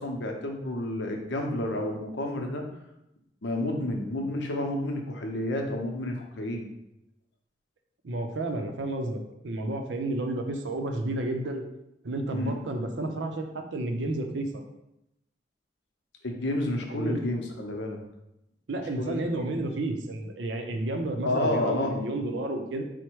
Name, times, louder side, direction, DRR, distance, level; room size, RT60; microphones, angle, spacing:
voice 1, 0.0-2.6 3.4-6.7 12.3-12.6 16.2-18.0 19.0-19.5 21.2-22.0, left 1 dB, 80° left, 2 dB, 0.7 m, -30 dB
voice 2, 8.0-9.2 9.4-11.6 12.0-14.6 16.9-17.2 18.7-22.8, right 2 dB, 80° right, 4 dB, 0.6 m, -31 dB
4.5 x 2.1 x 4.5 m, 0.86 s
head